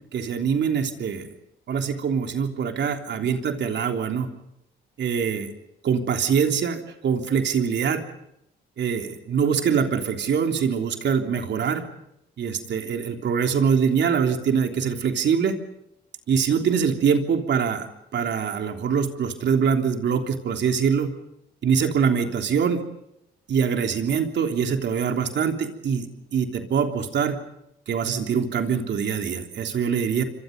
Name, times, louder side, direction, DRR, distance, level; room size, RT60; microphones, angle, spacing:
voice 1, 0.1-1.3 1.7-4.3 5.0-5.5 5.8-8.0 8.8-11.8 12.4-15.6 16.3-17.9 18.1-21.1 21.6-22.8 23.5-27.4 27.9-30.2, right 6 dB, 65° right, 5 dB, 3.4 m, -24 dB
28.5 x 25.0 x 5.4 m, 0.79 s
cardioid pair, 90°, 20 cm